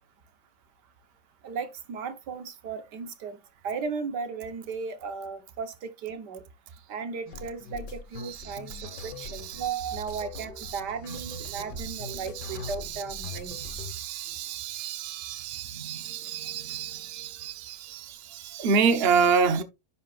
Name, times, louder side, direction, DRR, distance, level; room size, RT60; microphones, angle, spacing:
voice 1, 1.4-3.4 3.6-6.4 6.9-8.7 9.0-13.6, right 5 dB, 75° right, 1.7 m, -35 dB
sound 1, 7.3-13.9, left 5 dB, 80° left, 1.9 m, -42 dB
voice 2, 8.2-10.8 11.1-19.6, right 6 dB, 40° right, 1.0 m, -30 dB
10.5 x 7.1 x 2.4 m
omnidirectional pair, 1.8 m